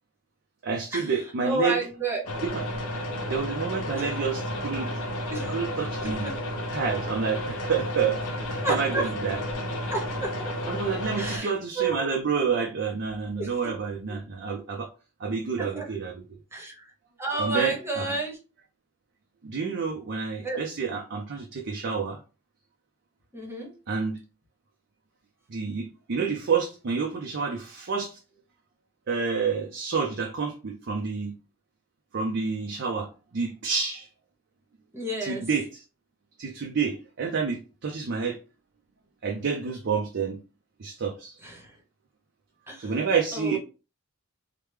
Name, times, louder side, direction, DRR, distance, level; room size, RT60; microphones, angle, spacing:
voice 1, 0.6-1.8 2.4-2.6 3.3-4.9 5.5-6.3 6.7-8.2 8.5-9.4 10.7-14.9 15.2-16.2 17.4-18.1 19.4-22.2 23.9-24.2 25.5-28.2 29.1-31.3 32.1-34.1 35.2-35.8 36.4-38.4 39.2-40.4 40.8-41.4 42.8-43.6, right 5 dB, 50° right, 0.5 m, -29 dB
voice 2, 1.4-2.2 3.9-4.1 5.3-5.5 6.0-6.4 8.6-9.1 9.9-10.6 11.2-12.1 13.4-13.6 14.1-14.2 15.6-15.8 16.5-16.9 17.2-18.4 20.4-20.6 23.3-23.7 34.9-35.4 41.4-41.8 42.7-43.0 43.3-43.6, right 2 dB, 10° right, 0.9 m, -31 dB
sound 1, 2.2-11.4, left 1 dB, 85° left, 0.8 m, -32 dB
3.3 x 2.1 x 3.2 m
head